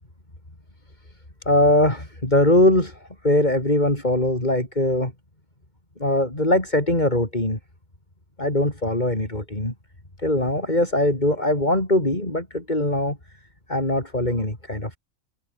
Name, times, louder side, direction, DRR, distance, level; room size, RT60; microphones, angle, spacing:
voice 1, 1.5-5.1 6.0-7.6 8.4-9.7 10.2-13.2 13.7-15.0, left 1 dB, 30° left, 5.3 m, -21 dB
omnidirectional pair, 1.4 m